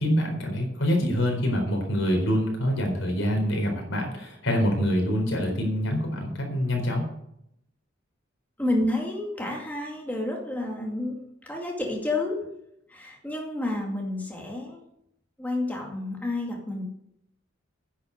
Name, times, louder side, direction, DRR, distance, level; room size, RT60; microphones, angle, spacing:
voice 1, 0.0-7.1, equal, 80° left, 2 dB, 4.2 m, -25 dB
voice 2, 8.6-11.2 11.4-12.5 12.9-14.8 15.4-16.9, left 2 dB, 10° left, -1 dB, 2.3 m, -30 dB
10.5 x 8.2 x 8.2 m, 0.76 s
head